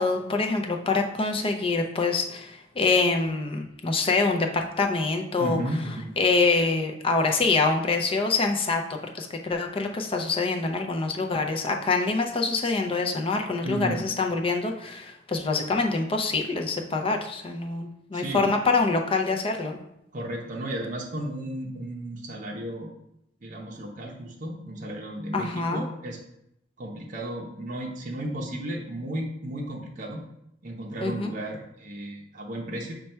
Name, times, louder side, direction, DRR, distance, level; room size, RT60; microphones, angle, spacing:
voice 1, 0.0-5.6 6.2-19.8 25.3-25.9 31.0-31.3, left 3 dB, 30° left, 4 dB, 0.5 m, -25 dB
voice 2, 5.4-6.1 13.6-14.0 18.1-18.5 20.1-22.9 23.4-26.2 26.8-30.2 30.6-32.9, right 1 dB, 45° right, -1 dB, 0.6 m, -34 dB
5.3 x 2.2 x 4.3 m, 0.79 s
head